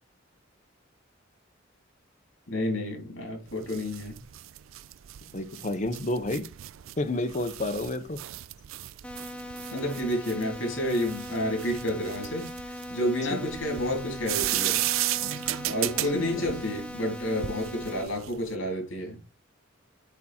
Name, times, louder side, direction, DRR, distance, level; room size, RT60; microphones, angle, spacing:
voice 1, 2.5-4.2 9.7-14.8 15.7-19.2, left 1 dB, 70° left, 3.4 m, -30 dB
sound 1, 3.5-18.5, right 15 dB, 80° right, 0.4 m, -35 dB
voice 2, 5.3-6.5 7.0-8.2 13.3-13.4 16.1-16.2, left 1 dB, 40° left, 0.9 m, -30 dB
sound 2, 9.0-18.0, left 1 dB, 5° left, 0.8 m, -40 dB
8.1 x 3.7 x 4.4 m
head